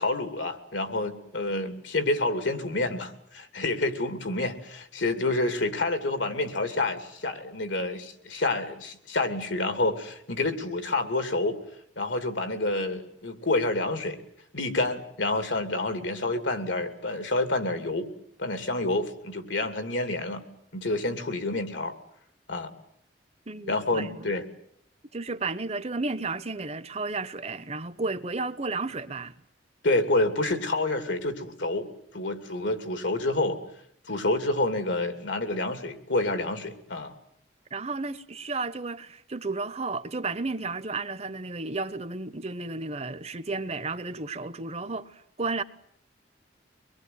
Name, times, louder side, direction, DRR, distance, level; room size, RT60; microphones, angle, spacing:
voice 1, 0.0-11.6 12.0-14.2 14.5-18.1 18.4-20.4 20.7-21.9 22.5-22.7 23.7-24.4 29.8-31.9 32.1-33.6 34.1-37.1, left 2 dB, 80° left, 2.8 m, -28 dB
voice 2, 23.5-24.3 25.1-29.4 37.7-45.6, right 3 dB, 35° right, 0.9 m, -33 dB
24.5 x 21.5 x 9.5 m
head